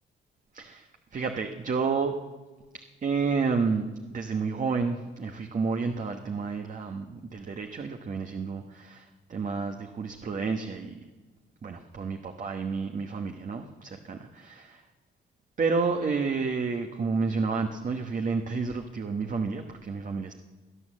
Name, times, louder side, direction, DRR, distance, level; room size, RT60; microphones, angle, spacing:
voice 1, 0.5-2.2 3.0-3.8 4.1-11.0 11.6-14.8 15.6-20.3, right 4 dB, 40° right, 4 dB, 1.1 m, -30 dB
18.0 x 11.0 x 7.4 m, 1.3 s
cardioid pair, 90°, 20 cm